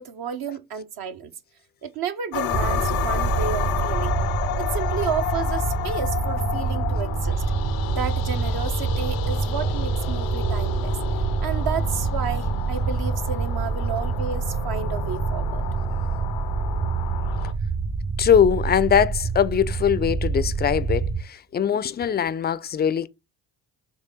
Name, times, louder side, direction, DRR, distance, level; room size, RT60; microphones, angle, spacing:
voice 1, 0.0-1.3 1.8-4.2 4.6-7.4 7.9-11.0 11.4-15.6, right 7 dB, 55° right, 0.8 m, -31 dB
sound 1, 2.3-17.5, left 13 dB, 85° left, 0.6 m, -31 dB
sound 2, 2.5-21.2, right 4 dB, 40° right, 1.2 m, -26 dB
voice 2, 18.2-23.1, left 8 dB, 25° left, 0.4 m, -21 dB
4.1 x 3.2 x 3.6 m
hypercardioid pair, 50°, 45 cm